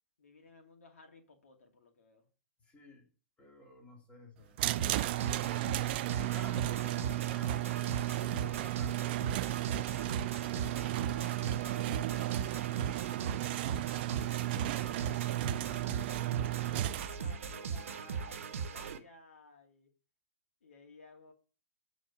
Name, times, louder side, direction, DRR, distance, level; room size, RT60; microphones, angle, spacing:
voice 1, 0.2-2.3 5.6-6.7 10.4-11.4 11.9-12.7 14.2-19.9 20.6-21.3, left 3 dB, 70° left, 2 dB, 2.3 m, -58 dB
voice 2, 2.6-3.1 3.4-4.7 5.8-9.3 11.6-12.4 12.8-13.5 14.1-14.5, left 2 dB, 15° left, 2 dB, 2.6 m, -54 dB
sound 1, 4.6-17.1, right 17 dB, 45° right, 0.3 m, -34 dB
sound 2, 4.8-19.0, right 6 dB, 65° right, 1.0 m, -39 dB
9.0 x 4.1 x 6.1 m, 0.38 s
hypercardioid pair, 120°, 8 cm